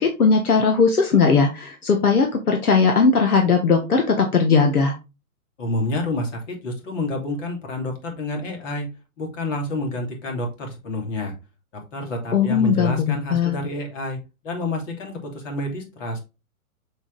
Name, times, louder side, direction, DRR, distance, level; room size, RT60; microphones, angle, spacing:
voice 1, 0.0-4.9 12.3-13.6, left 5 dB, 90° left, 3 dB, 1.4 m, -18 dB
voice 2, 5.6-8.9 9.2-11.3 11.9-14.2 14.4-16.2, left 1 dB, 60° left, 3 dB, 2.9 m, -28 dB
6.3 x 4.1 x 3.9 m, 0.28 s
hypercardioid pair, 130°, 43 cm